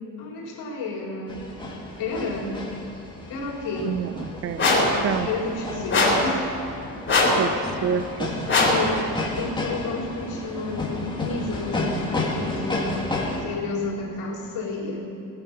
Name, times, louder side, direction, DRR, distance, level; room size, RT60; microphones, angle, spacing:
voice 1, 0.2-1.4 2.0-2.6 3.3-4.0 4.7-6.5 8.6-9.0 9.3-12.9 13.4-15.0, left 3 dB, 75° left, -3 dB, 3.8 m, -31 dB
sound 1, 1.3-13.4, left 2 dB, 15° left, 2.0 m, -31 dB
voice 2, 3.8-4.7 5.0-5.3 7.3-8.3, right 8 dB, 40° right, 12 dB, 0.4 m, -28 dB
sound 2, 4.6-5.0 5.9-6.3 7.1-7.4 8.5-8.9, left 2 dB, 30° left, 3.4 m, -19 dB
18.5 x 8.9 x 5.9 m, 2.8 s
cardioid pair, 145°, 37 cm